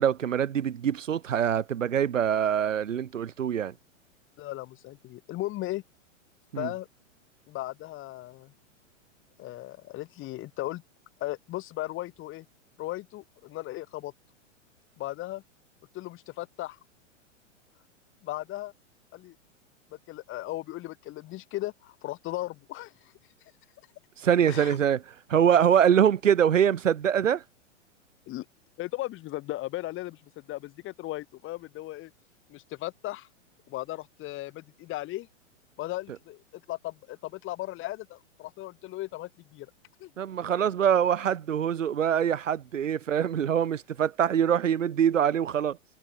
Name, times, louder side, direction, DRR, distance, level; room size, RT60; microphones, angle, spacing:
voice 1, 0.0-3.7 6.5-6.7 24.2-25.0 25.3-27.4 40.2-45.8, right 9 dB, 80° right, 3.9 m, -24 dB
voice 2, 4.4-5.8 6.6-6.9 7.5-8.5 9.4-10.8 11.2-12.4 12.8-14.1 15.0-15.4 15.9-16.8 18.2-18.7 19.1-19.4 20.1-23.1 24.4-24.8 28.3-28.4 28.8-32.1 32.5-33.3 33.7-35.3 35.8-39.7 40.0-40.1, left 16 dB, 30° left, 4.5 m, -36 dB
hypercardioid pair, 125°, 38 cm